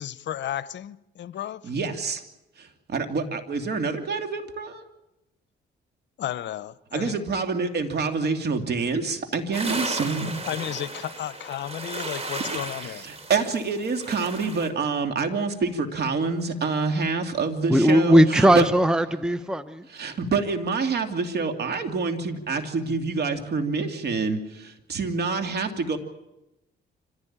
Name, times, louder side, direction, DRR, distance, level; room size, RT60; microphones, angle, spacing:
voice 1, 0.0-1.7 6.2-7.2 10.4-13.1, left 11 dB, 65° left, 0.8 m, -33 dB
voice 2, 1.6-2.2 2.6-4.8 6.9-10.4 12.5-12.6 12.8-18.7 19.9-24.6 24.9-26.0, right 4 dB, 55° right, 2.8 m, -27 dB
sound 1, 9.5-14.7, right 2 dB, 30° right, 3.6 m, -35 dB
voice 3, 17.7-19.8, equal, 5° right, 0.8 m, -18 dB
25.5 x 16.0 x 8.9 m
cardioid pair, 90°, 20 cm